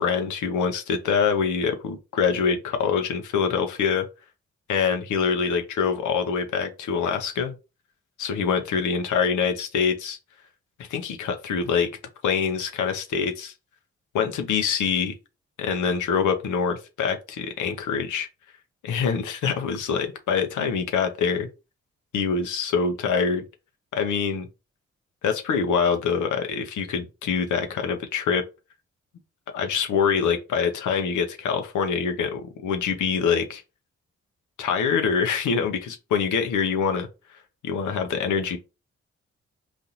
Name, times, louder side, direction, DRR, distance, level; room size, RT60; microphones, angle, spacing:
voice 1, 0.0-4.1 4.7-7.5 8.2-10.2 10.8-11.9 12.2-13.5 14.1-15.1 15.6-18.3 18.8-21.5 22.1-23.4 23.9-24.5 25.2-28.4 29.5-33.6 34.6-37.1 37.6-38.6, left 6 dB, 75° left, 0.7 m, -25 dB
4.1 x 2.5 x 2.9 m
supercardioid pair, 40°, 30 cm